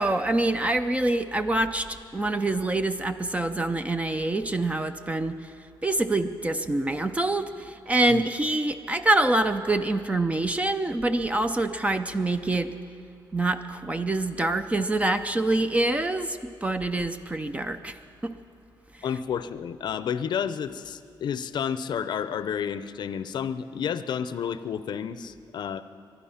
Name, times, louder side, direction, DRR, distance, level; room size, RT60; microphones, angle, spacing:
voice 1, 0.0-5.4 5.8-12.7 13.3-18.0 18.2-18.4, right 2 dB, 15° right, 9 dB, 0.5 m, -25 dB
voice 2, 19.0-25.8, left 8 dB, 60° left, 13 dB, 0.6 m, -31 dB
23.0 x 11.0 x 5.7 m, 2.4 s
cardioid pair, 120°, 8 cm